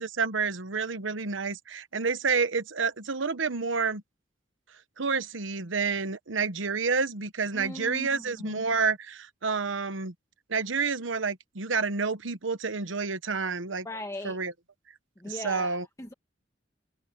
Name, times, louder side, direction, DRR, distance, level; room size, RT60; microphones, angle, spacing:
voice 1, 0.0-4.0 5.0-10.1 10.5-13.9 14.2-14.5 15.2-15.9, right 4 dB, 75° right, 1.1 m, -29 dB
voice 2, 7.5-8.6 13.8-14.4 15.2-16.1, left 1 dB, 15° left, 1.3 m, -39 dB
head